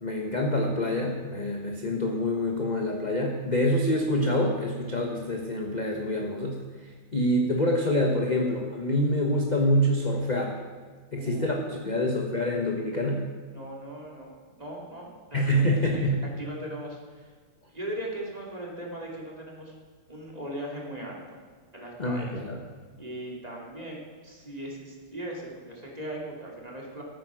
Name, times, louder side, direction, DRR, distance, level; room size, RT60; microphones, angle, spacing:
voice 1, 0.0-10.6 11.1-13.3 15.3-16.2 22.0-22.6, left 1 dB, 30° left, 1 dB, 1.1 m, -26 dB
voice 2, 11.1-11.6 13.5-17.3 17.7-19.7 20.1-21.2 21.7-22.3 23.0-27.0, right 1 dB, 20° right, -3 dB, 2.7 m, -39 dB
14.0 x 9.0 x 6.3 m, 1.5 s
omnidirectional pair, 2.0 m